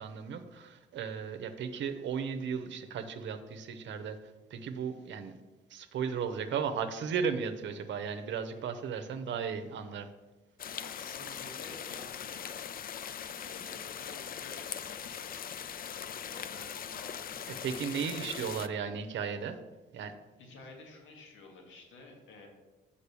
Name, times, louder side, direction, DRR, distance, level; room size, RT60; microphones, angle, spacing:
voice 1, 0.0-4.2 4.5-5.4 5.7-10.1 17.6-19.6 19.9-20.1, right 6 dB, 70° right, 7 dB, 0.8 m, -35 dB
sound 1, 10.6-18.7, left 8 dB, 45° left, 0.5 m, -41 dB
voice 2, 10.8-12.6 12.8-15.4 15.8-17.7 18.0-18.5 20.4-22.5, left 3 dB, 75° left, 1 dB, 1.9 m, -51 dB
6.7 x 5.2 x 6.8 m, 1.2 s
cardioid pair, 90°, 20 cm